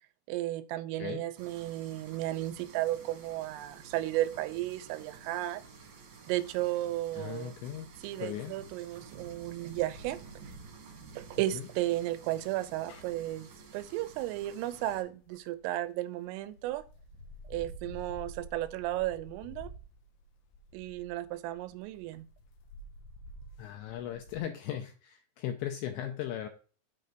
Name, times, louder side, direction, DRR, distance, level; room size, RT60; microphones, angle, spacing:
voice 1, 0.3-5.6 6.3-7.5 8.0-10.2 11.2-16.8 17.5-19.7 20.7-22.3, right 15 dB, 85° right, 3.2 m, -34 dB
sound 1, 1.4-15.0, right 5 dB, 55° right, 3.6 m, -51 dB
voice 2, 7.1-7.9 8.2-8.5 11.5-11.6 23.6-26.5, left 11 dB, 90° left, 2.6 m, -37 dB
sound 2, 10.0-15.9 16.5-24.4, equal, 70° left, 3.2 m, -51 dB
8.5 x 4.5 x 6.6 m
omnidirectional pair, 5.9 m